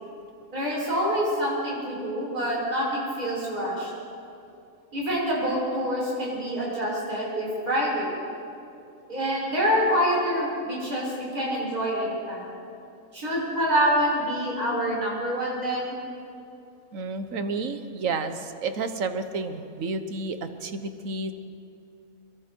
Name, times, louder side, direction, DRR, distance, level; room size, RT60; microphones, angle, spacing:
voice 1, 0.5-3.9 4.9-8.1 9.1-12.4 13.1-16.0, equal, 80° right, -6 dB, 7.3 m, -26 dB
voice 2, 16.9-21.3, right 3 dB, 65° right, 9 dB, 1.5 m, -31 dB
26.5 x 23.0 x 4.6 m, 2.6 s
omnidirectional pair, 1.5 m